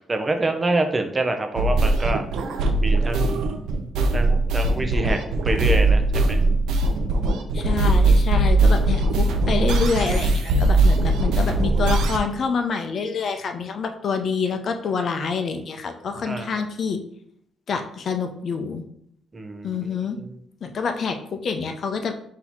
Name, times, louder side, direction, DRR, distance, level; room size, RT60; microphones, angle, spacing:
voice 1, 0.1-2.2 2.8-3.3 4.1-6.4 16.2-16.5 19.3-20.3, right 2 dB, 25° right, 5 dB, 0.6 m, -26 dB
sound 1, 1.6-12.2, right 2 dB, 85° right, 0.5 m, -20 dB
voice 2, 7.5-17.0 17.7-18.8 19.6-20.2 20.6-22.1, left 5 dB, 55° left, 6 dB, 0.5 m, -27 dB
3.9 x 2.8 x 4.3 m, 0.70 s
cardioid pair, 90°, 0 cm